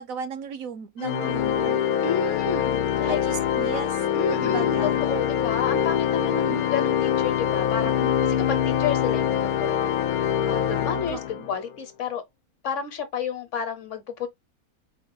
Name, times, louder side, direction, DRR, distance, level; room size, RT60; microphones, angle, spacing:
voice 1, 0.0-1.8 3.0-4.0 4.3-5.0 6.5-6.8 7.8-8.2 11.1-11.5, right 6 dB, 70° right, 1.1 m, -36 dB
Organ, 1.0-11.6, left 9 dB, 90° left, 1.1 m, -24 dB
voice 2, 2.0-3.2 4.1-7.9 8.2-12.2 12.6-14.3, left 6 dB, 60° left, 1.2 m, -30 dB
4.5 x 2.3 x 3.7 m
omnidirectional pair, 1.5 m